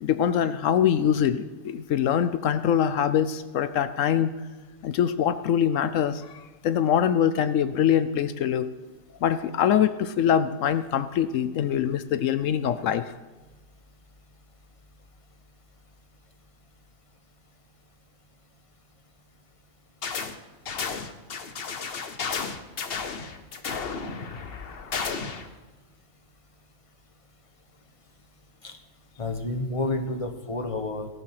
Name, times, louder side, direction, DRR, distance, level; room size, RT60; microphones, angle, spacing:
voice 1, 0.0-4.3 4.8-8.7 9.2-13.1, left 9 dB, 75° left, 13 dB, 0.9 m, -24 dB
sound 1, 20.0-20.4 20.7-25.5, left 5 dB, 50° left, 1.0 m, -33 dB
voice 2, 29.2-31.1, left 2 dB, 25° left, 6 dB, 1.1 m, -30 dB
17.5 x 7.1 x 5.9 m, 1.3 s
omnidirectional pair, 1.4 m